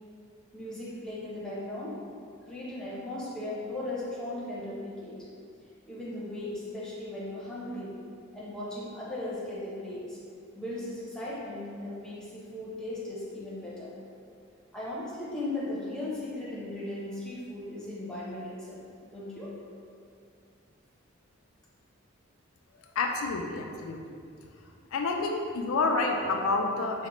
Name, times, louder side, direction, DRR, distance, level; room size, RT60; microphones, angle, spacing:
voice 1, 0.5-2.0 2.5-5.2 5.9-7.9 8.3-10.2 10.5-13.9 14.7-18.8 19.1-19.5, left 1 dB, 5° left, -8 dB, 0.8 m, -37 dB
voice 2, 23.0-24.0 24.9-27.1, left 3 dB, 85° left, 3 dB, 0.4 m, -28 dB
4.8 x 2.1 x 3.0 m, 2.4 s
head